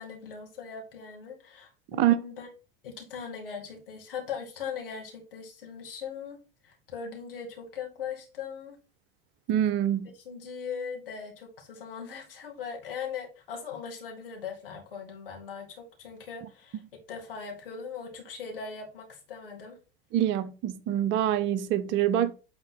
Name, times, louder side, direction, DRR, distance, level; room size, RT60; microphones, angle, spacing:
voice 1, 0.0-2.5 2.8-8.8 10.1-19.8, left 6 dB, 70° left, 2.2 m, -40 dB
voice 2, 9.5-10.1 20.1-22.3, right 11 dB, 40° right, 0.7 m, -25 dB
8.7 x 3.7 x 4.2 m
figure-of-eight pair, 80°, 29 cm